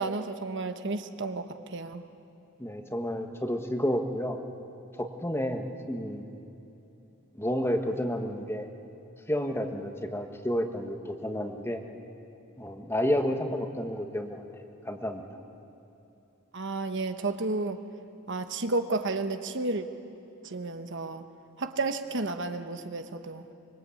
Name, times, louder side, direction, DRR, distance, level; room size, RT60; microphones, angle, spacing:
voice 1, 0.0-2.0 16.5-17.8 18.3-19.8 20.4-21.2 21.6-23.4, right 3 dB, 55° right, 8 dB, 1.1 m, -32 dB
voice 2, 2.6-4.4 4.9-6.3 7.3-8.7 9.3-11.8 12.6-15.3, equal, 10° left, 5 dB, 1.3 m, -31 dB
25.0 x 23.0 x 8.5 m, 2.9 s
head